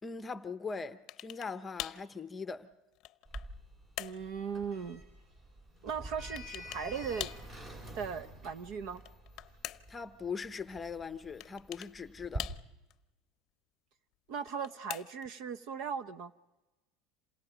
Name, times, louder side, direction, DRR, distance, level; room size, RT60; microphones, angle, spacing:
voice 1, 0.0-2.7 9.9-12.5, left 5 dB, 15° left, 0.8 m, -40 dB
sound 1, 1.1-1.5 1.8-2.1 2.7-3.5 4.0-4.3 6.4-6.9 7.2-7.5 8.9-10.0 11.4-11.9 12.4-12.9 14.4-15.3, left 15 dB, 45° left, 0.7 m, -43 dB
Sliding door, 3.3-12.4, right 1 dB, 30° right, 4.8 m, -47 dB
voice 2, 4.0-5.0 5.8-7.3 7.9-9.0 14.3-16.3, right 6 dB, 55° right, 1.0 m, -38 dB
28.5 x 27.5 x 5.1 m
cardioid pair, 160°, 0 cm